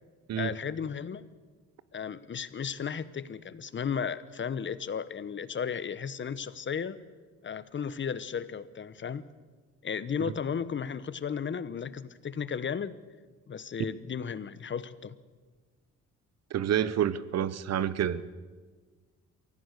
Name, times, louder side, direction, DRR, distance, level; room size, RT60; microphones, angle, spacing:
voice 1, 0.4-1.2 1.9-7.0 7.4-9.3 9.8-13.0 13.5-15.2, left 7 dB, 40° left, 16 dB, 1.0 m, -34 dB
voice 2, 16.5-18.3, right 10 dB, 60° right, 17 dB, 0.9 m, -28 dB
24.0 x 16.0 x 6.6 m, 1.4 s
cardioid pair, 90°, 30 cm